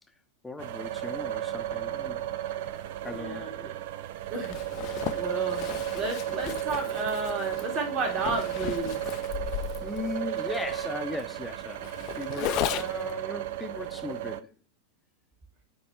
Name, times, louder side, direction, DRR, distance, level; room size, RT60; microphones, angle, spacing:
voice 1, 0.4-2.2 3.0-3.6 9.8-14.5, left 3 dB, 5° left, 0.8 m, -38 dB
sound 1, 0.6-14.4, right 12 dB, 50° right, 0.4 m, -34 dB
voice 2, 3.0-3.7 4.3-4.6 4.9-5.7 5.9-8.9, right 3 dB, 30° right, 2.0 m, -32 dB
Zipper (clothing), 4.4-13.1, left 14 dB, 40° left, 0.5 m, -36 dB
8.6 x 3.1 x 4.5 m
figure-of-eight pair, 90°, 0 cm